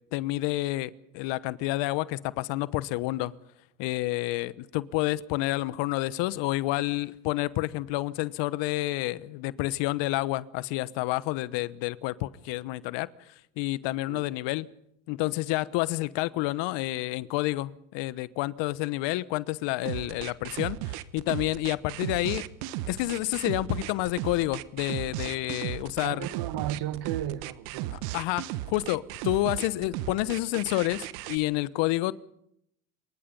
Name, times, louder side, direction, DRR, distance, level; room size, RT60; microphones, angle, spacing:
voice 1, 0.1-3.3 3.8-14.7 15.1-22.5 22.9-26.3 27.9-32.1, left 18 dB, 60° left, 1.2 m, -29 dB
sound 1, 19.9-31.4, right 15 dB, 70° right, 1.5 m, -35 dB
voice 2, 26.0-28.0, right 12 dB, 50° right, 2.0 m, -34 dB
27.0 x 24.0 x 5.4 m
hypercardioid pair, 80°, 50 cm